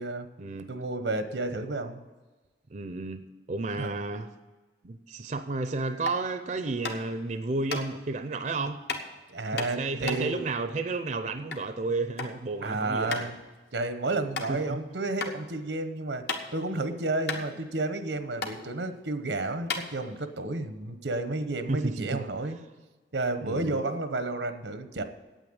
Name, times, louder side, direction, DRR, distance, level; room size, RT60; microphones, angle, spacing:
voice 1, 0.7-2.0 3.8-3.9 9.3-10.5 12.6-13.4 13.7-16.2 16.5-22.6 23.1-25.0, right 2 dB, 85° right, 9 dB, 1.0 m, -31 dB
voice 2, 2.7-3.2 3.5-4.3 4.8-8.8 9.4-13.3 14.5-14.8 21.7-22.3 23.4-23.8, right 3 dB, 45° right, 9 dB, 0.6 m, -32 dB
sound 1, 6.0-6.3 6.8-7.2 7.7-7.8 8.9-9.1 9.6-11.7 12.0-12.4 12.7-12.8 13.1-13.3 13.8-13.9 14.3-14.5 15.2-15.3 15.7-16.7 17.0-17.1 17.3-18.1 18.4-18.5 19.2-19.3 19.6-20.4, left 4 dB, 65° left, 1.3 m, -34 dB
9.1 x 8.6 x 7.9 m, 1.3 s
head